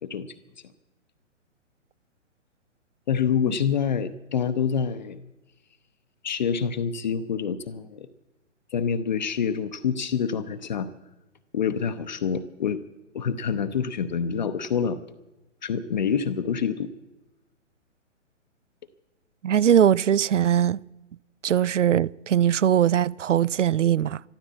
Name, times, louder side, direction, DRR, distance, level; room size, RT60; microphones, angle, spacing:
voice 1, 3.1-5.2 6.2-8.1 8.7-10.9 11.5-12.8 13.1-15.0 15.6-16.9, left 7 dB, 35° left, 0.6 m, -26 dB
voice 2, 19.4-20.8 21.4-24.2, right 10 dB, 70° right, 0.5 m, -21 dB
13.0 x 12.5 x 8.2 m
figure-of-eight pair, 125°, 38 cm